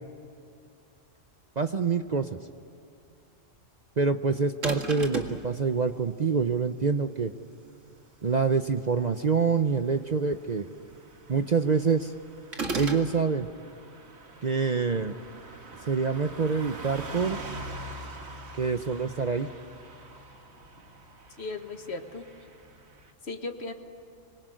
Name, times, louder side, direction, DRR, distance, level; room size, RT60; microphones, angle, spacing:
voice 1, 1.6-2.4 4.0-7.3 8.2-10.6 11.3-12.1 12.7-13.5 14.4-15.1 15.9-17.4 18.6-19.5, right 5 dB, 40° right, 8 dB, 0.7 m, -26 dB
sound 1, 4.6-5.4 12.5-13.1, right 3 dB, 75° right, 2.4 m, -32 dB
Car passing by / Truck, 10.1-23.1, right 2 dB, 60° right, 2.1 m, -45 dB
voice 2, 21.4-22.2 23.2-23.7, left 3 dB, 55° left, 6 dB, 1.8 m, -36 dB
26.0 x 22.5 x 9.2 m, 2.5 s
omnidirectional pair, 1.3 m